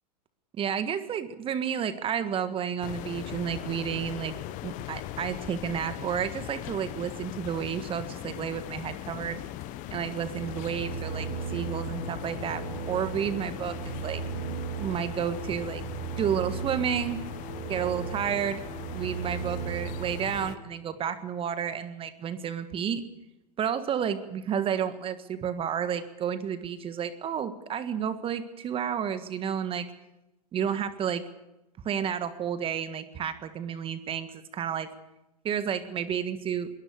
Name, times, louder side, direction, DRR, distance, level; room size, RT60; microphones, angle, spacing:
voice 1, 0.6-4.4 4.6-9.4 9.9-14.2 14.8-15.8 16.2-17.2 17.7-18.6 18.9-23.0 23.6-29.9 30.5-31.2 31.9-34.9 35.4-36.7, right 8 dB, 25° right, 12 dB, 1.7 m, -31 dB
sound 1, 2.8-20.6, left 14 dB, 40° left, 1.3 m, -39 dB
sound 2, 10.4-20.5, right 7 dB, 45° right, 5.2 m, -37 dB
22.5 x 19.0 x 6.8 m, 0.95 s
hypercardioid pair, 110°, 21 cm